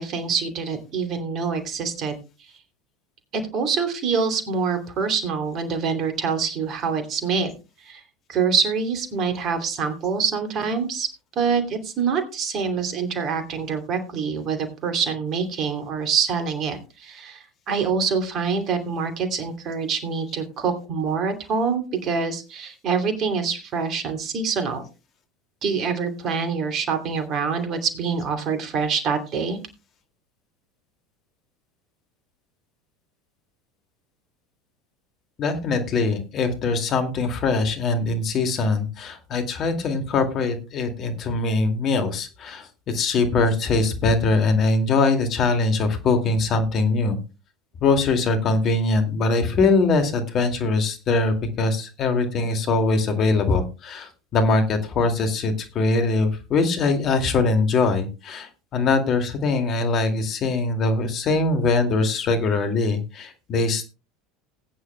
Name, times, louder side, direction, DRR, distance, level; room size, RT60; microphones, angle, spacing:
voice 1, 0.0-2.1 3.3-7.6 7.8-8.0 8.3-11.1 11.4-24.8 25.6-29.6, right 5 dB, 45° right, 6 dB, 2.8 m, -25 dB
voice 2, 35.4-47.2 47.8-63.8, left 3 dB, 45° left, 6 dB, 2.3 m, -22 dB
19.5 x 9.6 x 2.2 m, 0.30 s
hypercardioid pair, 75°, 0 cm